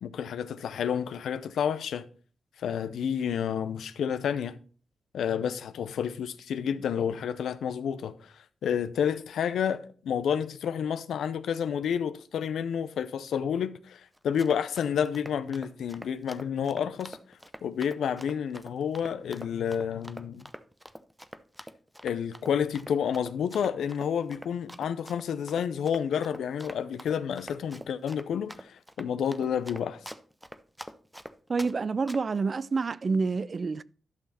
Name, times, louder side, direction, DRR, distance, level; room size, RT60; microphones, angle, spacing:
voice 1, 0.0-2.0 2.6-4.6 5.1-8.3 8.6-17.2 17.6-20.4 22.0-30.0, left 8 dB, 90° left, 0.6 m, -30 dB
Run, 14.2-31.7 32.1-32.4, equal, 5° right, 0.6 m, -45 dB
voice 2, 31.5-33.8, right 4 dB, 45° right, 0.4 m, -28 dB
11.5 x 5.9 x 4.2 m
cardioid pair, 75°, 0 cm